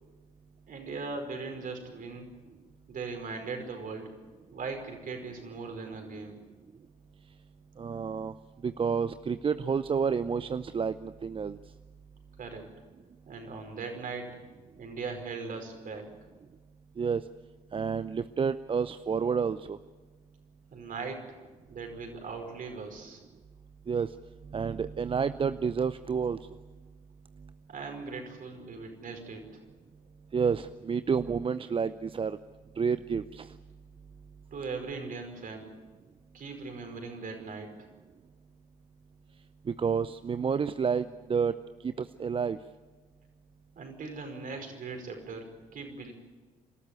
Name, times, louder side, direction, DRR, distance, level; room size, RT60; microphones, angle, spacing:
voice 1, 0.7-2.3 2.9-4.1 4.5-6.4 12.4-12.6 13.2-14.4 14.8-16.1 20.7-21.2 21.7-23.2 27.7-29.5 34.5-35.7 36.3-37.7 43.7-45.5 45.7-46.1, right 4 dB, 50° right, 4 dB, 5.1 m, -39 dB
voice 2, 7.8-8.3 8.6-11.6 17.0-17.2 17.7-19.8 23.9-24.1 24.4-26.4 30.3-32.4 32.8-33.6 39.7-41.6 41.8-42.6, right 6 dB, 30° right, 13 dB, 0.6 m, -29 dB
28.5 x 13.0 x 9.6 m, 1.3 s
hypercardioid pair, 50°, 18 cm